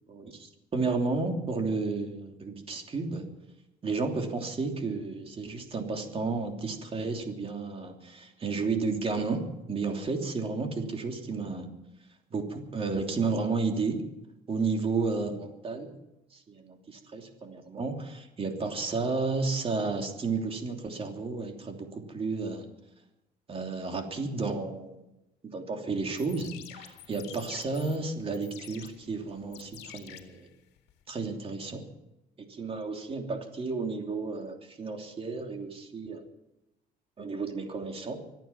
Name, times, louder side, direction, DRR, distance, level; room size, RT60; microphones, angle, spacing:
voice 1, 0.1-3.3 3.8-11.7 12.3-14.1 14.5-16.0 16.3-22.6 23.5-25.0 25.4-30.5 31.1-31.8 32.4-36.2 37.2-38.2, right 4 dB, 35° right, 3 dB, 3.1 m, -32 dB
sound 1, 26.0-31.0, left 12 dB, 85° left, 2.0 m, -50 dB
25.0 x 9.2 x 6.0 m, 0.92 s
cardioid pair, 110°, 17 cm